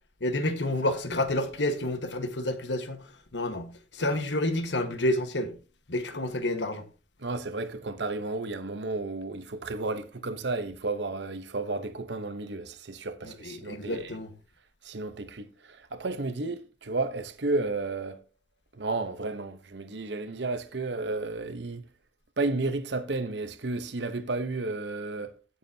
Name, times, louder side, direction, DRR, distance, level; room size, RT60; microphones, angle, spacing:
voice 1, 0.2-3.0 3.3-5.5 5.9-6.8 13.2-14.3, left 1 dB, 90° left, 1.4 m, -29 dB
voice 2, 7.2-14.1 14.8-18.2 18.8-21.8 22.4-25.3, right 3 dB, 80° right, 0.9 m, -32 dB
16.0 x 7.3 x 2.8 m
head